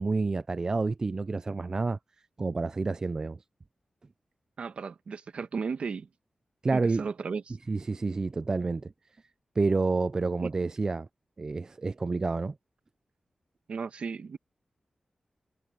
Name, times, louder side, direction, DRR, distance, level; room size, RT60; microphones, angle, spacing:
voice 1, 0.0-2.0 2.4-3.4 6.6-7.0 7.7-8.9 9.6-11.1 11.4-12.5, right 3 dB, 30° right, 0.4 m, -29 dB
voice 2, 4.6-6.1 6.7-7.6 10.4-10.5 13.7-14.4, right 5 dB, 65° right, 1.5 m, -35 dB
wide cardioid pair, 155°, 2 cm